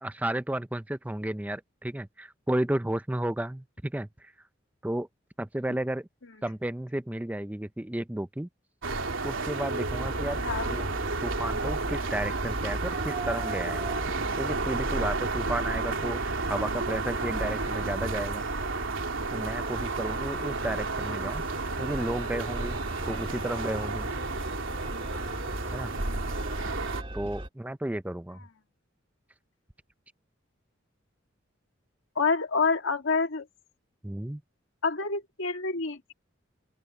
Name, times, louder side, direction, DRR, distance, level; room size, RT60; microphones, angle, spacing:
voice 1, 0.0-4.3 4.8-5.1 5.4-6.1 6.4-8.5 9.2-10.4 10.7-10.9 11.2-13.9 14.4-18.5 19.3-21.4 21.8-22.8 23.1-24.1 25.7-25.9 27.1-28.4 34.0-34.4, right 1 dB, 10° right, 0.5 m, -33 dB
sound 1, 8.8-27.0, right 3 dB, 90° right, 3.0 m, -31 dB
sound 2, 9.8-27.5, right 1 dB, 30° right, 2.1 m, -40 dB
voice 2, 10.4-10.8 32.2-33.5 34.8-36.1, left 4 dB, 80° left, 1.8 m, -27 dB
open air
head